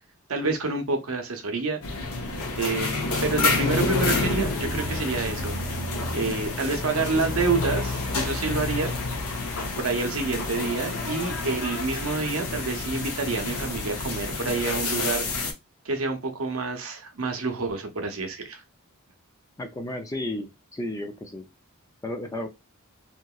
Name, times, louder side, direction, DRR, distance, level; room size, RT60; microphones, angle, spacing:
voice 1, 0.3-1.8 2.6-5.5 6.1-8.9 9.8-15.2 15.8-18.6, right 3 dB, 70° right, 0.7 m, -28 dB
sound 1, 1.8-15.5, left 3 dB, 85° left, 0.7 m, -28 dB
voice 2, 19.6-21.5 22.0-22.5, left 1 dB, 15° left, 0.3 m, -33 dB
2.8 x 2.5 x 2.3 m
head